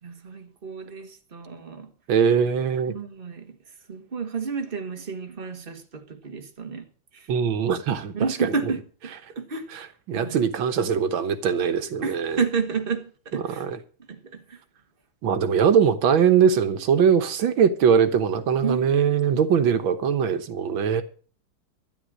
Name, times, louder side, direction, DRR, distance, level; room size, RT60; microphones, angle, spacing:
voice 1, 0.0-1.9 2.9-3.6 3.9-6.9 7.1-7.3 8.1-9.8 10.1-10.5 12.0-13.7 14.1-14.6 18.6-18.9 20.9-21.0, right 5 dB, 30° right, 1.9 m, -31 dB
voice 2, 2.1-2.9 7.3-8.1 8.4-8.5 10.1-12.4 13.3-13.8 15.2-21.0, right 7 dB, 80° right, 1.9 m, -21 dB
13.0 x 9.9 x 6.3 m
omnidirectional pair, 2.1 m